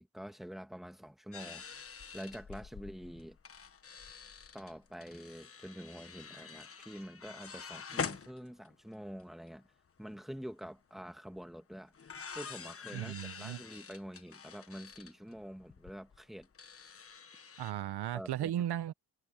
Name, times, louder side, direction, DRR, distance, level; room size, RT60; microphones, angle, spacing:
voice 1, 0.0-1.6 2.1-3.4 4.5-9.7 10.0-11.9 12.3-16.5 18.1-18.5, equal, ahead, 2.0 m, -46 dB
sound 1, 1.3-8.9 9.2-9.3 9.5-9.9 11.3-11.4 11.9-17.7, left 6 dB, 35° left, 1.4 m, -46 dB
voice 2, 12.9-13.6 17.6-18.9, right 12 dB, 80° right, 1.0 m, -36 dB
cardioid pair, 110°, 39 cm